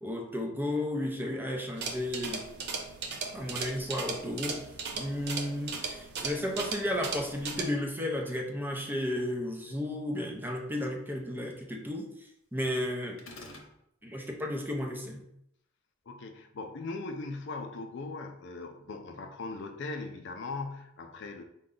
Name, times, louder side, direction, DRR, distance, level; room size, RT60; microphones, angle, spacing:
voice 1, 0.0-2.4 3.3-4.6 4.9-12.1 12.5-13.2 14.0-15.2, left 1 dB, 10° right, 1 dB, 0.6 m, -33 dB
sound 1, 1.8-7.6, right 4 dB, 55° right, 0.6 m, -37 dB
sound 2, 13.2-13.7, left 2 dB, 85° left, 0.8 m, -46 dB
voice 2, 16.1-21.4, left 3 dB, 60° left, 5 dB, 0.5 m, -39 dB
5.1 x 2.3 x 3.7 m, 0.77 s
head